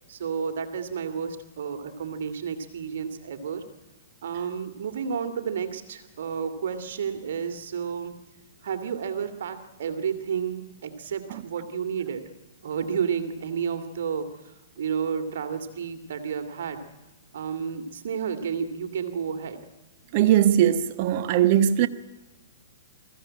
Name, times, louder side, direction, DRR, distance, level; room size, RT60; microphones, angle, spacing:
voice 1, 0.1-3.6 4.2-8.1 8.6-12.2 12.6-16.8 17.3-19.6, right 7 dB, 70° right, 2.7 m, -31 dB
voice 2, 20.1-21.9, right 11 dB, 45° right, 1.2 m, -20 dB
22.5 x 15.0 x 8.8 m
hypercardioid pair, 125°, 0 cm